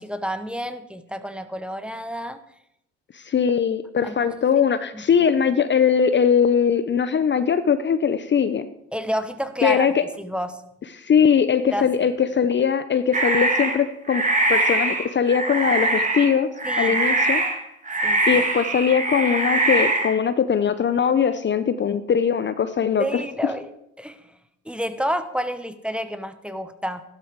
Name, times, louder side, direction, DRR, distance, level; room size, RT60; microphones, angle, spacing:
voice 1, 0.0-2.4 4.0-4.3 4.9-5.0 8.9-9.9 10.2-10.6 11.7-11.9 16.6-17.0 18.0-18.4 23.0-23.7 24.0-24.4 24.6-27.0, equal, 5° right, 11 dB, 1.1 m, -29 dB
voice 2, 3.1-8.7 9.6-10.0 10.9-14.2 14.5-16.5 16.8-17.4 18.3-23.2, left 7 dB, 35° left, 12 dB, 0.7 m, -21 dB
sound 1, 13.1-13.8 14.1-20.2, right 2 dB, 25° right, 2.0 m, -22 dB
12.5 x 12.0 x 4.7 m, 0.79 s
supercardioid pair, 80°, 32 cm